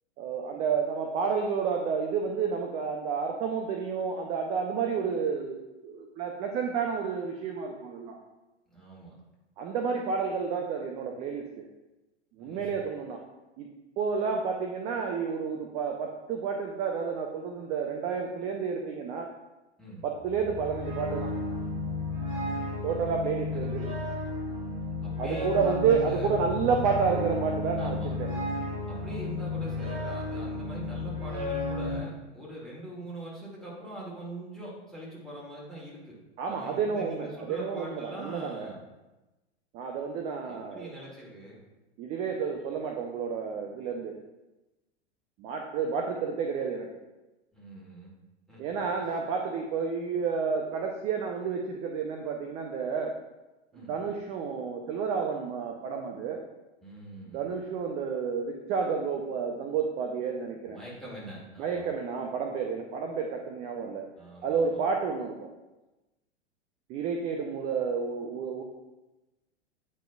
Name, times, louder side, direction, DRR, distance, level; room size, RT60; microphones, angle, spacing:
voice 1, 0.2-8.2 9.6-11.7 12.4-13.2 13.6-13.7 14.0-19.3 20.0-21.3 22.8-23.9 25.2-28.3 36.4-38.7 39.7-40.9 42.0-44.2 45.4-47.0 48.6-53.1 53.7-56.4 57.3-60.8 61.6-64.1 64.4-65.5 66.9-68.6, right 6 dB, 20° right, 3 dB, 0.4 m, -30 dB
voice 2, 8.7-9.2 12.4-12.7 19.8-20.0 23.5-23.7 25.0-26.4 27.8-28.1 28.9-36.2 36.5-38.8 40.4-41.6 47.5-48.1 48.5-48.9 53.7-53.9 56.8-57.5 60.7-61.9 64.2-64.8, right 1 dB, ahead, -7 dB, 1.9 m, -43 dB
sound 1, 20.2-32.0, left 2 dB, 45° right, 1.5 m, -33 dB
9.0 x 5.2 x 2.3 m, 1.0 s
figure-of-eight pair, 95°, 35 cm